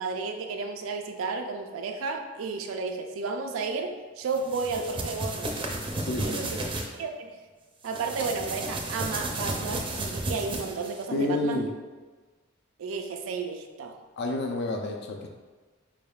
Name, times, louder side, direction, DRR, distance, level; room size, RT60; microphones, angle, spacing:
voice 1, 0.0-5.5 6.2-6.6 7.0-7.4 7.8-11.6 12.8-14.0, right 4 dB, 90° right, 4 dB, 0.4 m, -32 dB
sound 1, 4.3-6.9 7.8-11.0, right 2 dB, 25° right, 0.4 m, -33 dB
voice 2, 6.0-6.6 11.1-11.7 14.2-15.3, left 2 dB, 55° left, 2 dB, 0.4 m, -29 dB
4.6 x 3.4 x 2.3 m, 1.3 s
head